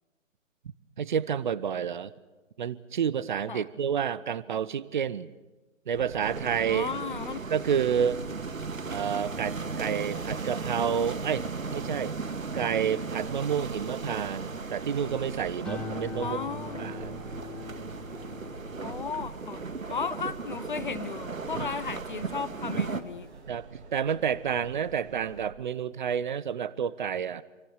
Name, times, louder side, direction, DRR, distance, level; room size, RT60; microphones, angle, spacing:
voice 1, 1.0-2.1 2.6-5.3 5.9-6.9 7.5-8.2 8.9-12.1 12.5-16.4 16.8-17.2 21.6-21.7 22.7-22.8 23.5-27.4, right 8 dB, 35° right, 19 dB, 0.9 m, -29 dB
sound 1, 5.9-25.5, right 4 dB, 55° right, 3.1 m, -46 dB
sound 2, 6.2-23.0, right 4 dB, 80° right, 2.0 m, -36 dB
voice 2, 6.6-7.4 16.2-16.9 18.8-19.6 19.9-23.3, left 6 dB, 40° left, 16 dB, 0.7 m, -35 dB
sound 3, 15.6-22.2 22.6-23.1, left 3 dB, ahead, 1.5 m, -43 dB
28.0 x 24.0 x 6.6 m, 1.2 s
figure-of-eight pair, 145°, 40 cm